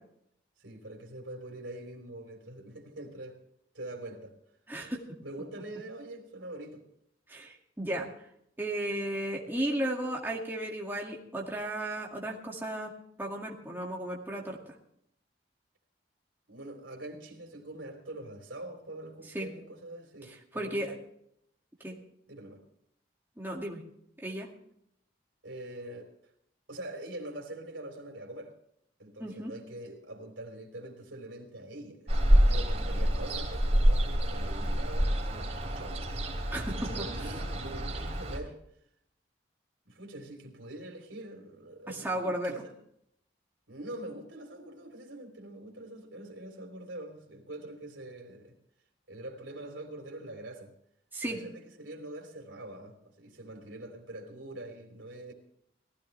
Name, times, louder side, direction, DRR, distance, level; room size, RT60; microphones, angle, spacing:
voice 1, 0.6-3.4 3.7-4.3 5.2-6.8 16.5-21.0 22.3-22.6 25.4-26.1 26.7-28.5 29.0-36.0 36.8-38.6 39.8-42.7 43.7-48.5 49.1-50.7 51.2-55.3, right 1 dB, 85° right, 3 dB, 3.4 m, -44 dB
voice 2, 4.7-5.0 7.3-8.1 8.6-12.9 13.2-14.7 19.3-19.5 20.5-20.9 21.8-21.9 23.4-23.8 24.2-24.5 29.2-29.5 36.5-36.9 37.2-37.3 41.9-42.5 51.1-51.4, right 1 dB, 10° right, -2 dB, 2.1 m, -34 dB
Ocean, 32.1-38.4, equal, 35° right, 3.5 m, -27 dB
18.5 x 15.0 x 3.3 m, 0.72 s
head